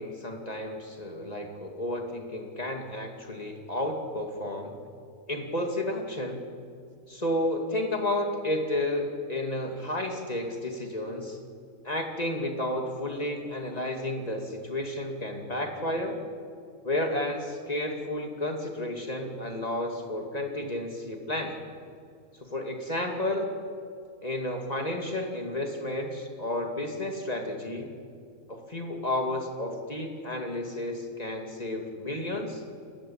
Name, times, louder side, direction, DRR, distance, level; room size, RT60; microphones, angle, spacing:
voice 1, 0.0-4.7 5.3-6.4 7.1-11.4 11.8-16.2 16.8-21.6 22.4-23.5 24.2-27.9 28.5-32.6, left 1 dB, 25° left, 3 dB, 2.6 m, -32 dB
29.5 x 14.0 x 8.8 m, 2.4 s
omnidirectional pair, 1.6 m